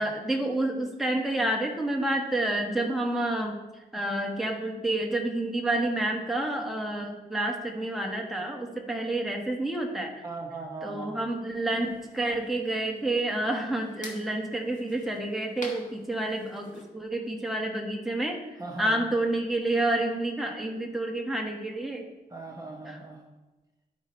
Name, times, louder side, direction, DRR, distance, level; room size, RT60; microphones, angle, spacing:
voice 1, 0.0-10.2 10.8-22.1 22.9-23.0, right 1 dB, ahead, 0 dB, 1.4 m, -29 dB
voice 2, 10.2-11.2 18.6-19.1 22.3-23.2, right 3 dB, 20° right, 0 dB, 1.2 m, -38 dB
sound 1, 11.7-16.9, left 3 dB, 50° left, 1.6 m, -49 dB
11.0 x 5.3 x 4.4 m, 1.1 s
cardioid pair, 95°, 16 cm